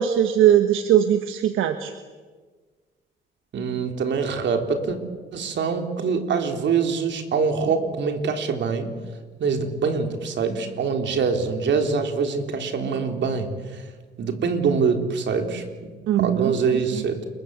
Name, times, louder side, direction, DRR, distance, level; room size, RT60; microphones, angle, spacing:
voice 1, 0.0-1.9 16.1-16.8, right 10 dB, 85° right, 8 dB, 1.4 m, -20 dB
voice 2, 3.5-5.0 5.3-8.9 9.4-13.9 14.2-15.9 16.2-17.2, right 5 dB, 65° right, 5 dB, 3.8 m, -24 dB
29.0 x 22.5 x 8.2 m, 1.4 s
cardioid pair, 90°, 20 cm